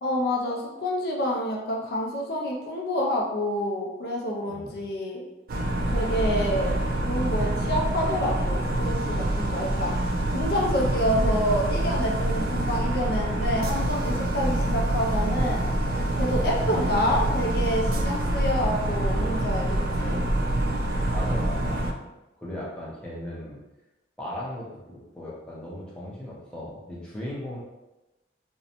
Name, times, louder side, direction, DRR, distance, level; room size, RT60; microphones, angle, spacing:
voice 1, 0.0-5.2 5.9-6.7 7.0-9.9 10.3-15.7 16.2-20.2, equal, 60° left, -1 dB, 0.4 m, -28 dB
voice 2, 4.5-4.8 14.4-14.8 16.6-17.3 20.0-20.2 21.1-22.0 22.4-23.6 24.2-27.6, left 1 dB, 5° left, -7 dB, 0.6 m, -37 dB
sound 1, 5.5-21.9, right 1 dB, 55° right, 0.3 m, -26 dB
2.6 x 2.1 x 2.8 m, 1.0 s
head